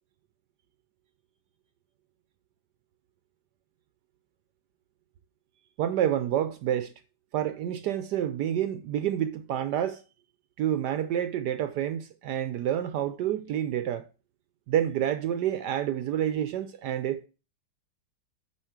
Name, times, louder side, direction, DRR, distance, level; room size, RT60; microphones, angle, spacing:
voice 1, 5.8-6.9 7.3-10.0 10.6-14.1 14.7-17.2, right 10 dB, 75° right, 1.0 m, -28 dB
7.2 x 5.6 x 4.7 m
omnidirectional pair, 2.2 m